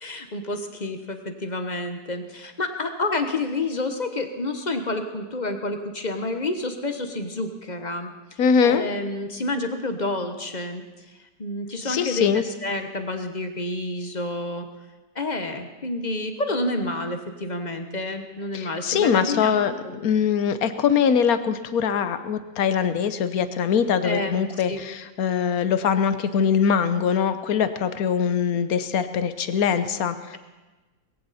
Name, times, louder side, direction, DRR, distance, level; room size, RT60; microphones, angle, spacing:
voice 1, 0.0-10.8 11.4-14.7 15.1-20.0 24.0-24.3 24.7-24.8, left 2 dB, 30° left, 6 dB, 1.1 m, -29 dB
voice 2, 8.4-8.8 11.8-12.4 18.5-19.7 20.0-30.4, left 7 dB, 60° left, 11 dB, 1.3 m, -22 dB
20.0 x 16.0 x 4.2 m, 1.2 s
omnidirectional pair, 1.9 m